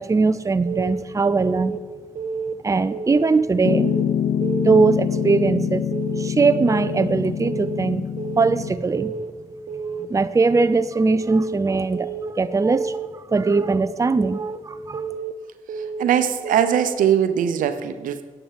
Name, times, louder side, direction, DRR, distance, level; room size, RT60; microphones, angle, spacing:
voice 1, 0.0-1.8 2.6-3.9 4.6-5.9 6.2-8.1 8.4-9.1 10.0-13.0 13.3-15.0, right 4 dB, 25° right, 13 dB, 0.5 m, -20 dB
Keyboard (musical) / Alarm, 0.7-1.0 1.4-1.8 2.2-2.5 2.9-3.3 3.7-4.0 4.4-4.8 5.2-5.5 5.9-6.3 6.7-7.0 7.4-7.8 8.2-8.6 8.9-9.3 9.7-10.1 10.4-10.8 11.2-11.6 11.9-12.3 12.7-13.1 13.4-13.8 14.2-14.6 14.9-15.3 15.7-16.1 16.4-16.8, right 5 dB, 65° right, 1.1 m, -30 dB
Piano, 3.6-8.7, left 8 dB, 65° left, 0.4 m, -25 dB
voice 2, 16.0-18.2, right 9 dB, 85° right, 10 dB, 0.8 m, -20 dB
10.0 x 8.0 x 7.3 m, 1.3 s
cardioid pair, 60°, 14 cm